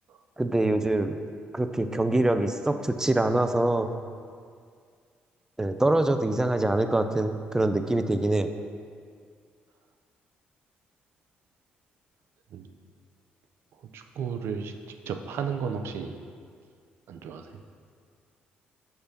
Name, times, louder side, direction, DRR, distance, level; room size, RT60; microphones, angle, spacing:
voice 1, 0.4-1.2 1.5-3.9 5.6-8.5, right 2 dB, 15° right, 8 dB, 0.4 m, -24 dB
voice 2, 13.7-14.7 15.1-16.2 17.1-17.6, right 6 dB, 70° right, 6 dB, 0.5 m, -34 dB
6.7 x 3.3 x 5.8 m, 2.1 s
supercardioid pair, 60°, 4 cm